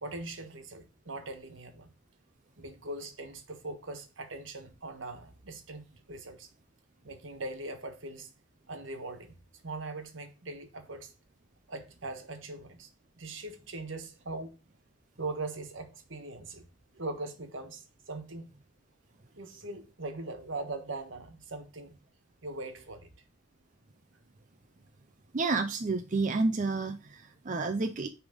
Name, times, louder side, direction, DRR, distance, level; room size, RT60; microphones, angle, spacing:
voice 1, 0.0-1.9 2.6-6.5 7.0-8.3 8.7-11.1 11.7-12.9 13.2-14.6 15.2-16.6 16.9-18.5 19.3-22.0 22.4-23.1, right 2 dB, 75° right, 1.4 m, -41 dB
voice 2, 25.3-28.1, right 3 dB, 40° right, 0.5 m, -30 dB
9.7 x 3.5 x 5.1 m
head